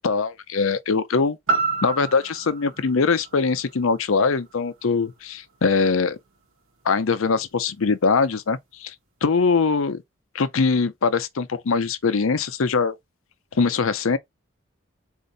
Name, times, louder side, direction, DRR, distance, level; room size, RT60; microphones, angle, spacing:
voice 1, 0.0-1.4 1.8-6.2 6.8-8.9 9.2-10.0 10.3-13.0 13.6-14.2, left 4 dB, 80° left, 0.6 m, -22 dB
sound 1, 1.5-5.6 6.0-6.1, right 3 dB, 80° right, 1.1 m, -30 dB
4.4 x 2.6 x 3.9 m
head